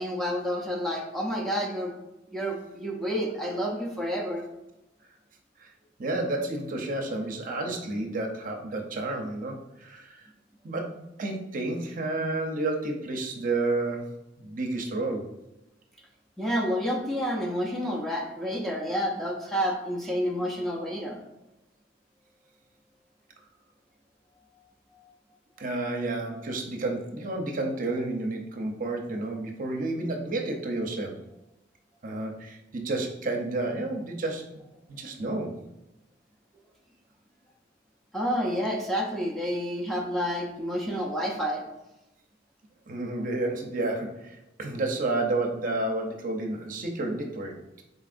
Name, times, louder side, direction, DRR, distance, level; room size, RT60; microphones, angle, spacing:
voice 1, 0.0-2.0 2.3-4.5 16.4-21.2 38.1-41.6, equal, ahead, -2 dB, 0.5 m, -29 dB
voice 2, 6.0-10.3 10.6-10.9 11.2-14.1 14.4-15.3 25.6-31.2 32.0-35.6 42.9-47.5, right 2 dB, 45° right, 2 dB, 0.6 m, -31 dB
4.6 x 4.0 x 2.5 m, 0.93 s
head